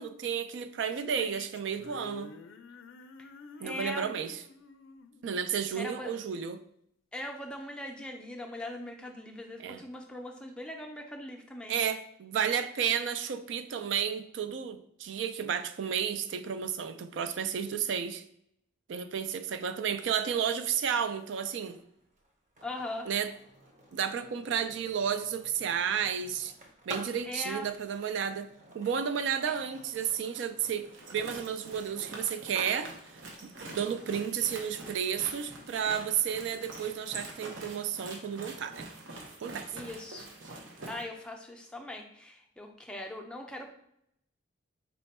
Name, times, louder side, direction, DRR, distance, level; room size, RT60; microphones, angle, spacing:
voice 1, 0.0-2.3 3.6-4.4 5.2-6.6 9.6-9.8 11.7-18.2 18.9-21.8 23.1-23.3 23.9-26.5 26.9-28.5 28.7-30.9 31.1-32.9 33.4-38.9 39.4-39.7, right 8 dB, 75° right, 0.3 m, -32 dB
sound 1, 0.9-6.3, left 4 dB, 80° left, 0.4 m, -50 dB
voice 2, 3.6-4.1 5.7-6.1 7.1-11.8 22.6-23.1 27.3-27.7 39.7-40.3 40.9-43.7, left 1 dB, 5° left, 0.4 m, -40 dB
Skateboard, 21.6-37.4, right 2 dB, 40° right, 0.7 m, -51 dB
sound 2, 30.8-41.0, right 2 dB, 90° right, 0.7 m, -45 dB
4.2 x 2.2 x 4.1 m
head